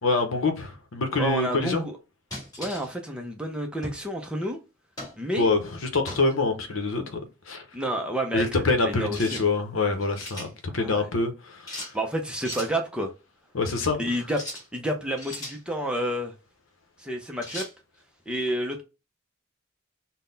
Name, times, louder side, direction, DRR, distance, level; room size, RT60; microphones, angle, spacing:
voice 1, 0.0-1.8 5.4-7.2 7.5-7.6 8.3-11.9 13.5-14.0, left 3 dB, 75° left, 0.8 m, -25 dB
voice 2, 1.2-2.0 2.6-4.6 5.2-5.5 7.7-9.4 10.7-11.1 11.9-13.1 14.0-14.4 14.7-16.3 17.0-17.6 18.3-18.8, right 1 dB, 5° right, 0.5 m, -29 dB
sound 1, 2.3-2.9 3.8-4.1 5.0-5.2 6.1-6.3 9.1-9.5 9.9-10.5 11.7-11.9 12.4-12.7 14.3-14.7 15.2-15.6 17.4-17.7, left 1 dB, 20° left, 1.7 m, -37 dB
3.8 x 2.1 x 3.9 m
head